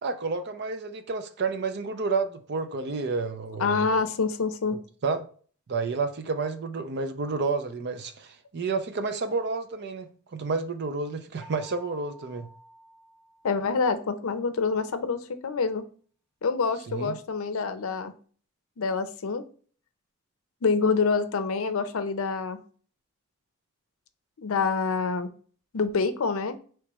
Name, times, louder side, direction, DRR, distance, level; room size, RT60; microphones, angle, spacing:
voice 1, 0.0-3.9 5.0-5.3 5.7-12.5 16.9-17.2, right 4 dB, 50° right, 0.5 m, -30 dB
voice 2, 3.6-4.8 13.4-15.8 16.4-18.1 18.8-19.4 20.6-22.6 24.4-25.3 25.7-26.6, left 4 dB, 70° left, 0.5 m, -26 dB
sound 1, 11.4-14.2, right 1 dB, ahead, 1.0 m, -52 dB
4.7 x 3.2 x 3.0 m
head